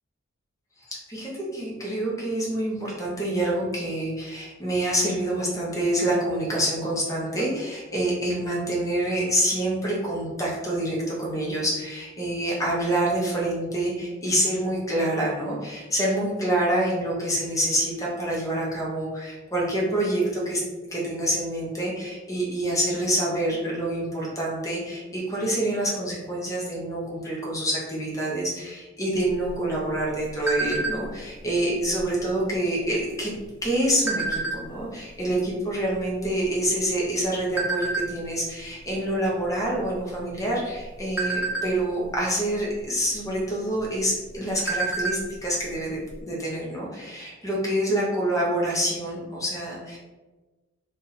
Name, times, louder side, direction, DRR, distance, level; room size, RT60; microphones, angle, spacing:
voice 1, 0.8-20.6 20.9-33.3 33.6-50.0, right 1 dB, 15° left, -4 dB, 0.9 m, -27 dB
sound 1, 29.3-31.3 31.7-32.0 32.3-32.7 33.4-34.9 35.5-35.6 35.8-37.1 37.6-38.1 38.6-38.8 39.1-39.4 39.8-40.3 40.8-42.2 43.3-43.4 43.8-43.9 44.3-45.3 45.6-45.7 46.1-46.2, right 3 dB, 10° right, 0.5 m, -28 dB
2.9 x 2.6 x 4.1 m, 1.2 s
head